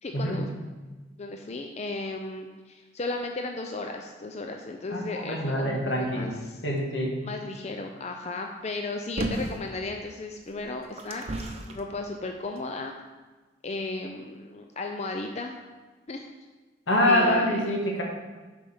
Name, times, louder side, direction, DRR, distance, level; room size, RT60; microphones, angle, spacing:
voice 1, 0.0-0.5 1.2-6.6 7.2-12.9 13.6-15.6 16.1-16.3 17.0-17.6, left 2 dB, 35° left, 3 dB, 0.5 m, -35 dB
voice 2, 4.9-6.3 6.6-7.1 16.9-18.0, left 1 dB, 80° left, -1 dB, 1.7 m, -25 dB
sound 1, 9.2-9.7 10.4-11.8 12.6-12.7, right 1 dB, 35° right, 0.8 m, -32 dB
7.3 x 5.1 x 5.5 m, 1.3 s
head